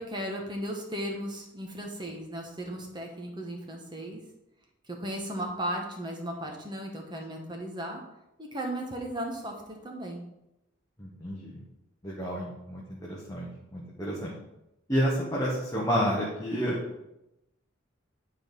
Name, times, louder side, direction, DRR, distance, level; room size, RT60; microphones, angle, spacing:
voice 1, 0.0-4.2 4.9-8.0 8.4-9.5 9.8-10.2, right 1 dB, 20° right, 1 dB, 1.2 m, -36 dB
voice 2, 11.0-11.6 12.0-14.3 14.9-16.8, equal, 15° left, -4 dB, 1.2 m, -30 dB
9.9 x 4.0 x 5.3 m, 0.89 s
head